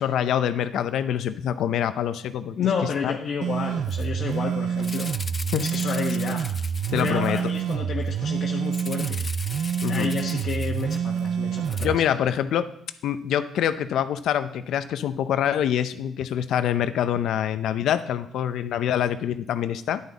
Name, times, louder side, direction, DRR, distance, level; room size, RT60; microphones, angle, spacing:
voice 1, 0.0-2.5 3.0-3.1 5.5-5.6 6.9-7.4 9.8-10.1 11.8-12.7 13.0-20.0, left 10 dB, 75° left, 12 dB, 0.6 m, -25 dB
voice 2, 2.5-5.1 5.6-6.4 7.0-9.2 9.9-11.9, left 5 dB, 60° left, -2 dB, 1.2 m, -30 dB
sound 1, 3.4-12.0, right 8 dB, 65° right, 0.4 m, -27 dB
Rattle (instrument), 3.9-4.1 4.3-4.4 4.8-7.7 8.7-11.3 11.6-11.9, left 4 dB, 35° left, 0.5 m, -39 dB
10.5 x 9.7 x 4.1 m, 0.69 s
cardioid pair, 90°, 0 cm